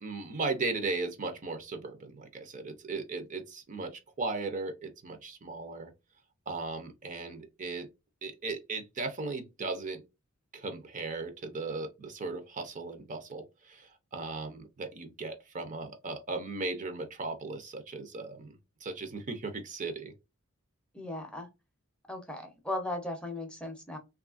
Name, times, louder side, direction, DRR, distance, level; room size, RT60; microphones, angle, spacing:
voice 1, 0.0-5.9 6.5-7.9 8.2-10.0 10.5-20.1, right 3 dB, 40° right, 0.5 m, -37 dB
voice 2, 20.9-21.5 22.1-24.0, left 1 dB, 5° left, 0.6 m, -37 dB
3.1 x 2.4 x 2.4 m
head